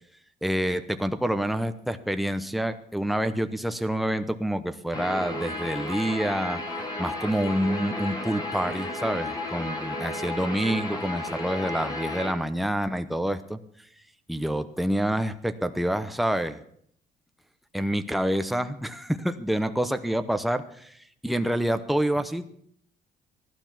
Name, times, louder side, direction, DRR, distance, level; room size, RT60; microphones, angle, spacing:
voice 1, 0.4-6.6 7.0-13.6 14.3-16.6 17.7-21.0 21.2-22.4, right 1 dB, ahead, 9 dB, 0.9 m, -27 dB
Guitar, 4.9-12.3, left 1 dB, 25° left, 2.3 m, -33 dB
16.0 x 12.0 x 5.9 m, 0.68 s
cardioid pair, 110°, 17 cm